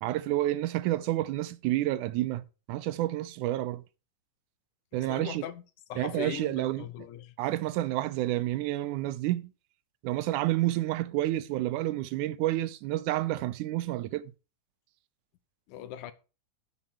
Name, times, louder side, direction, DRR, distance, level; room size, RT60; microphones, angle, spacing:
voice 1, 0.0-3.8 4.9-5.4 6.0-6.9 7.4-9.5 10.0-14.3, right 15 dB, 85° right, 2.1 m, -29 dB
voice 2, 4.9-5.6 5.9-7.3 15.7-16.1, left 11 dB, 90° left, 2.3 m, -40 dB
12.0 x 5.1 x 4.3 m
omnidirectional pair, 3.5 m